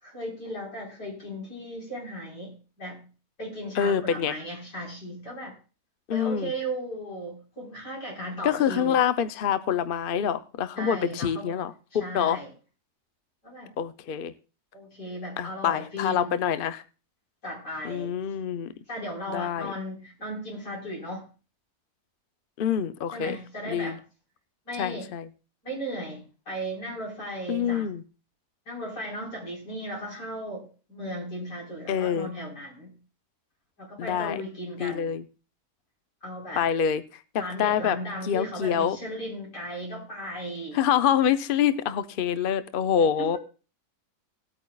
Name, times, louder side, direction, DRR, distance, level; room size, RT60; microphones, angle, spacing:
voice 1, 0.0-3.0 3.4-5.5 6.1-9.0 10.8-11.6 12.0-12.5 13.4-13.7 14.7-16.5 17.4-18.1 18.9-21.3 23.1-24.0 24.7-25.1 25.6-27.9 28.7-32.9 33.8-35.1 36.2-36.6 37.4-40.8 43.2-43.4, equal, 85° left, -4 dB, 5.1 m, -36 dB
voice 2, 3.8-4.4 6.1-6.5 8.4-12.4 13.8-14.3 15.4-16.8 17.8-18.7 19.3-19.7 22.6-23.4 23.7-24.0 24.8-25.3 27.5-28.0 31.9-32.3 34.0-34.4 34.8-35.2 36.6-37.0 37.6-38.0 38.2-39.0 40.7-43.4, left 8 dB, 55° left, 12 dB, 0.6 m, -26 dB
19.0 x 8.6 x 2.3 m, 0.34 s
omnidirectional pair, 1.7 m